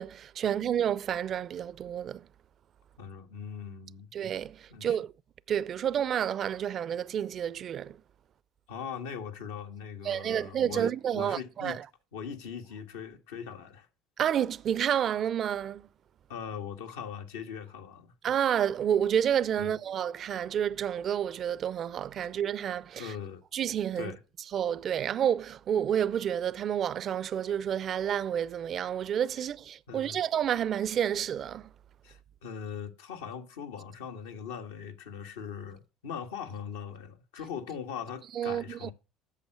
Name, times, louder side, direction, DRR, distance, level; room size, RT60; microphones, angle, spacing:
voice 1, 0.0-2.2 4.1-5.1 5.5-8.0 10.0-11.8 14.2-15.8 18.2-23.1 23.5-24.1 24.5-31.7 38.4-38.9, right 9 dB, 50° right, 0.4 m, -30 dB
voice 2, 3.0-4.1 4.7-5.0 8.7-11.8 12.1-13.9 16.3-18.1 19.6-19.8 23.0-23.4 23.9-24.2 29.9-30.2 32.0-38.9, left 7 dB, 90° left, 1.5 m, -40 dB
8.3 x 6.7 x 7.8 m
supercardioid pair, 75°, 0 cm